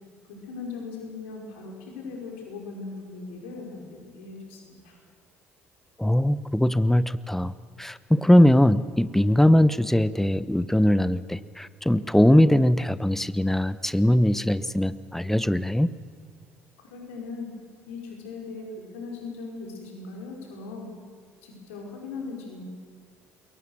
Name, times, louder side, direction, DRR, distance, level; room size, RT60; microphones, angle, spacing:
voice 1, 0.3-5.0 16.8-17.5 17.9-20.9 21.4-22.6, left 4 dB, 70° left, 1 dB, 5.3 m, -39 dB
voice 2, 6.0-7.5 7.8-15.9, left 1 dB, 5° left, 16 dB, 1.0 m, -21 dB
27.0 x 22.5 x 6.5 m, 2.1 s
figure-of-eight pair, 55°, 7 cm